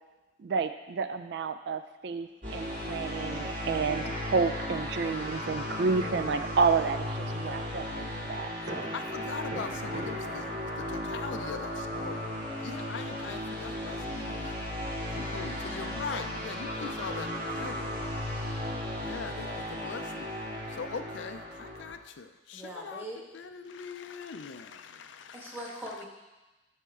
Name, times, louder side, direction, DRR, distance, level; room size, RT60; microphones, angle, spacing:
voice 1, 0.4-8.9, right 5 dB, 65° right, 10 dB, 0.4 m, -30 dB
sound 1, 2.1-3.0 3.3-3.4 4.1-4.7 5.1-10.6, right 1 dB, 80° right, 2.9 m, -45 dB
sound 2, 2.4-21.9, left 1 dB, 45° right, 2.1 m, -35 dB
voice 2, 8.9-12.3 12.6-14.4 15.1-18.0 18.9-23.0 23.3-25.6, left 5 dB, 85° left, 9 dB, 0.5 m, -41 dB
voice 3, 22.5-23.2 25.3-26.1, right 1 dB, 10° right, -3 dB, 1.4 m, -41 dB
13.0 x 4.3 x 3.6 m, 1.1 s
head